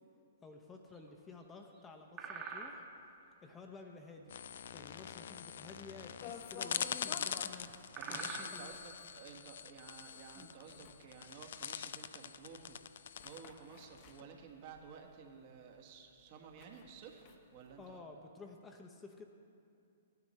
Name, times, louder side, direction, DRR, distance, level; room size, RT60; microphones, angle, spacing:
voice 1, 0.4-2.9 3.4-4.3 4.7-8.7 10.3-10.5 17.8-19.3, left 3 dB, 15° left, 3 dB, 0.8 m, -53 dB
sound 1, 0.9-1.5 1.7-1.8 2.2-3.1 3.7-5.1 5.3-5.7 5.9-6.1 6.4-6.5 7.3-7.4 7.7-9.1 9.5-9.8 10.3-11.5 11.9-12.2 12.6-12.7 13.0-13.4 14.1-14.2 14.5-14.7, right 5 dB, 30° right, 1.3 m, -47 dB
sound 2, 4.3-14.2, left 8 dB, 65° left, 0.3 m, -44 dB
sound 3, 6.2-15.3 15.7-15.8 16.2-18.0, left 6 dB, 40° left, 1.0 m, -53 dB
voice 2, 7.9-17.3 17.5-18.0, right 6 dB, 45° right, 2 dB, 1.4 m, -53 dB
16.0 x 9.7 x 3.2 m, 2.5 s
figure-of-eight pair, 120°, 0 cm